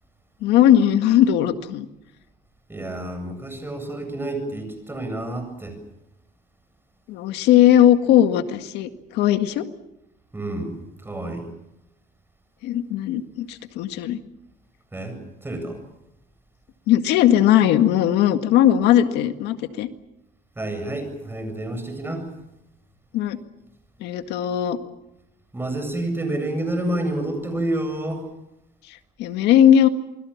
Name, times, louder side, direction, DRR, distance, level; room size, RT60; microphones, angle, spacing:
voice 1, 0.4-1.9 7.1-9.7 12.6-14.2 16.9-19.9 23.1-23.4 24.0-24.8 29.2-29.9, left 11 dB, 90° left, 8 dB, 1.9 m, -18 dB
voice 2, 2.7-5.8 10.3-10.7 11.0-11.5 14.9-15.8 20.6-22.3 25.5-28.3, right 1 dB, 15° right, 7 dB, 7.9 m, -29 dB
28.0 x 22.0 x 7.3 m, 0.88 s
cardioid pair, 110°, 17 cm